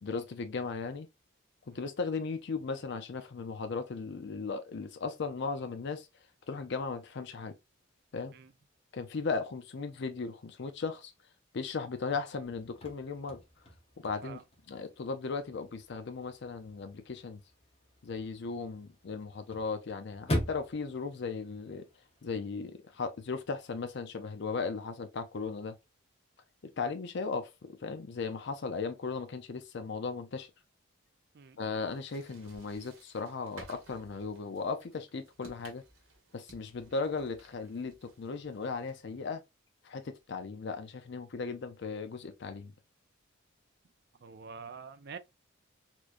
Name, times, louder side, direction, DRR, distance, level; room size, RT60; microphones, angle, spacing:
voice 1, 0.0-1.1 1.7-6.1 6.5-7.5 8.1-8.3 8.9-11.1 11.5-13.4 14.0-14.4 14.7-17.4 18.0-21.8 22.2-25.8 26.8-30.5 31.6-35.8 36.3-39.4 39.9-42.7, left 4 dB, 55° left, 0.5 m, -37 dB
Chirp tweet / Car / Slam, 12.5-22.4, left 1 dB, 30° left, 0.8 m, -42 dB
sound 1, 31.9-39.2, right 2 dB, 90° right, 1.4 m, -56 dB
voice 2, 44.2-45.2, right 5 dB, 55° right, 0.5 m, -46 dB
4.3 x 3.0 x 2.5 m
head